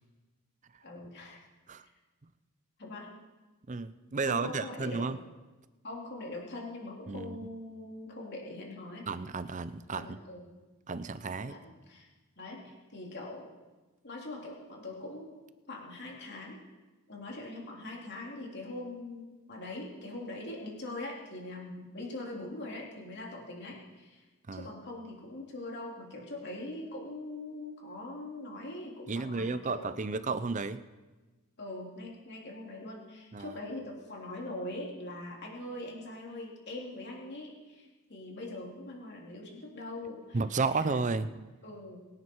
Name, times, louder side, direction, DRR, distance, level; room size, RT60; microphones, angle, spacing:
voice 1, 0.8-1.4 2.8-3.1 4.2-5.1 5.8-9.0 9.9-10.5 11.5-12.1 12.4-13.5 14.0-15.3 15.7-16.6 17.1-24.2 24.5-29.9 31.6-41.0 41.6-42.1, left 2 dB, 50° left, -2 dB, 3.2 m, -42 dB
voice 2, 3.7-5.2 7.1-7.4 9.1-10.2 10.9-11.6 24.5-24.7 29.1-30.8 33.3-33.6 40.3-41.3, right 4 dB, 35° right, 13 dB, 0.6 m, -32 dB
23.5 x 9.5 x 4.6 m, 1.2 s
head